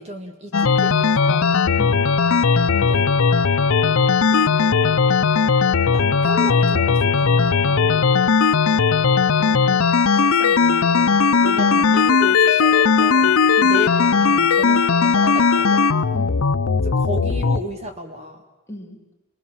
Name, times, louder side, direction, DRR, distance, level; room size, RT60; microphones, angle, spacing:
voice 1, 0.0-1.5 2.7-3.1 4.3-4.7 5.9-8.0 10.2-15.8 16.8-18.5, equal, 30° right, 4 dB, 1.8 m, -34 dB
sound 1, 0.5-17.6, left 5 dB, 90° left, 0.7 m, -17 dB
voice 2, 1.8-2.1 9.4-9.8 10.2-10.3 13.6-13.8 16.1-16.5 18.7-19.0, left 1 dB, 15° left, 0 dB, 2.7 m, -37 dB
26.0 x 21.5 x 7.3 m, 1.1 s
head